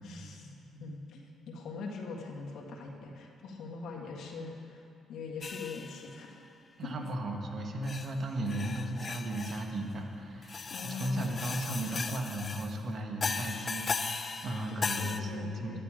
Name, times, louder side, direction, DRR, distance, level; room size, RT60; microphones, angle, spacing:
voice 1, 0.0-4.8 5.1-6.4 6.8-6.9 10.7-11.6 14.7-15.8, left 4 dB, 75° left, -1 dB, 1.7 m, -42 dB
sound 1, 5.4-6.3 7.0-7.1 7.8-8.1 8.5-9.7 10.4-12.7 13.2-15.2, left 5 dB, 40° left, 0.5 m, -37 dB
voice 2, 6.8-15.8, right 1 dB, 50° right, 2 dB, 1.5 m, -36 dB
11.5 x 11.0 x 5.0 m, 2.5 s
cardioid pair, 90°, 0 cm